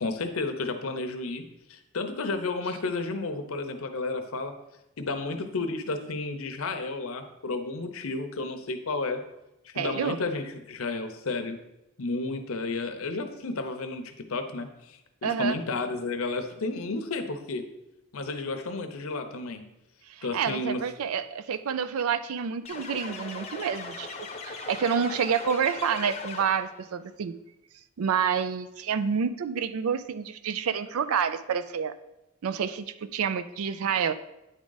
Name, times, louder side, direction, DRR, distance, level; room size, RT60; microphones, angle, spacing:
voice 1, 0.0-1.4 1.7-4.6 5.0-9.2 9.6-11.6 12.0-17.6 18.1-19.6 20.2-20.8, left 3 dB, 80° left, 7 dB, 0.7 m, -32 dB
voice 2, 9.7-10.2 15.2-15.6 20.1-24.1 24.4-27.3 28.0-31.9 32.4-34.1, right 7 dB, 90° right, 12 dB, 0.4 m, -28 dB
sound 1, 22.6-26.8, left 4 dB, 30° left, 0.7 m, -39 dB
9.4 x 3.7 x 3.9 m, 0.91 s
head